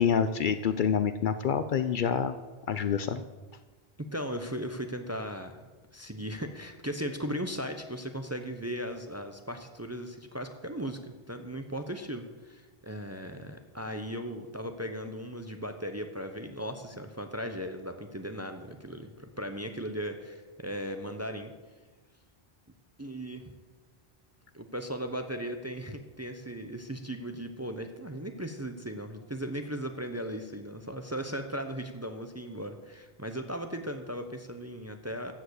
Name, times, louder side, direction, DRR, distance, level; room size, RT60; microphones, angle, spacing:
voice 1, 0.0-2.4 2.7-3.2, left 7 dB, 60° left, 11 dB, 0.6 m, -27 dB
voice 2, 4.1-5.5 5.9-21.5 23.0-23.5 24.5-35.3, equal, 20° right, 6 dB, 0.6 m, -37 dB
13.0 x 5.0 x 8.0 m, 1.3 s
omnidirectional pair, 1.0 m